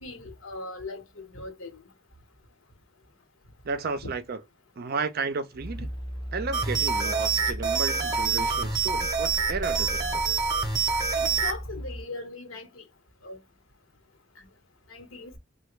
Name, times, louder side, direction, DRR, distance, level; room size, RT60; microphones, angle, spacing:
voice 1, 0.0-1.8 4.0-4.1 5.8-5.9 11.1-12.8 13.2-13.4 14.9-15.3, left 3 dB, 75° left, 1.1 m, -39 dB
voice 2, 3.6-4.4 4.8-5.9 6.3-10.5, right 4 dB, 50° right, 0.5 m, -33 dB
sound 1, 5.6-12.0, equal, 25° left, 0.6 m, -37 dB
sound 2, 6.5-11.6, right 5 dB, 20° right, 0.8 m, -26 dB
3.3 x 2.2 x 3.1 m
head